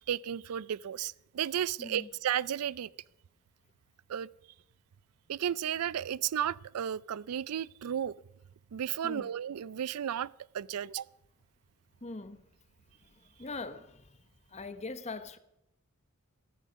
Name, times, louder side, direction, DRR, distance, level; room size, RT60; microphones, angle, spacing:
voice 1, 0.1-2.9 4.1-4.3 5.3-8.1 8.7-11.1, right 9 dB, 85° right, 0.4 m, -33 dB
voice 2, 1.8-2.1 9.0-9.3 12.0-12.4 13.4-14.2 14.5-15.4, left 3 dB, 30° left, 0.9 m, -41 dB
14.5 x 14.0 x 5.2 m
head